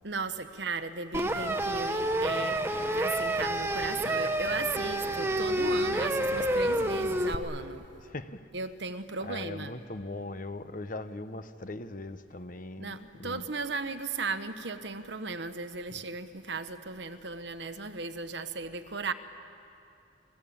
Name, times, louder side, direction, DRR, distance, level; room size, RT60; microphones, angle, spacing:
voice 1, 0.0-7.9 8.5-9.7 12.8-19.1, right 4 dB, 65° right, 9 dB, 1.2 m, -36 dB
sound 1, 1.1-7.4, right 1 dB, 15° right, 1.2 m, -29 dB
voice 2, 8.0-8.4 9.2-13.5 15.9-16.0, left 2 dB, 45° left, 11 dB, 1.0 m, -40 dB
29.0 x 21.0 x 8.8 m, 2.6 s
head